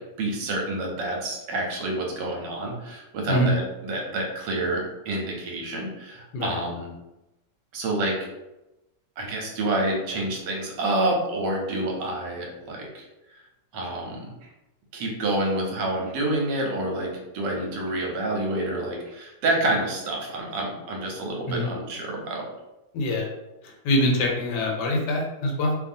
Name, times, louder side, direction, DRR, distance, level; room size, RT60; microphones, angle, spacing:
voice 1, 0.2-6.9 7.7-8.2 9.2-13.0 13.7-14.3 14.9-22.4, right 2 dB, 80° right, 0 dB, 1.3 m, -28 dB
voice 2, 22.9-23.3 23.6-25.7, left 1 dB, 80° left, 0 dB, 1.2 m, -24 dB
2.7 x 2.6 x 2.6 m, 0.96 s
omnidirectional pair, 1.9 m